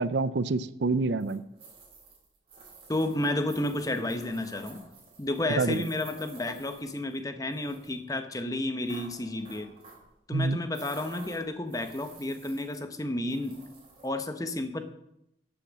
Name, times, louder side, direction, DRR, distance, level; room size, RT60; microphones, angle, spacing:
voice 1, 0.0-1.4 5.6-5.9 10.3-10.6, right 3 dB, 70° right, 15 dB, 0.6 m, -27 dB
sound 1, 1.2-7.2 7.5-8.0 8.9-10.1 10.7-12.9 13.3-14.1, right 4 dB, 30° right, 4.4 m, -51 dB
voice 2, 2.9-4.9 5.2-9.7 10.3-13.6 14.0-14.8, left 1 dB, 20° left, 8 dB, 1.0 m, -31 dB
12.5 x 7.2 x 7.2 m, 0.81 s
head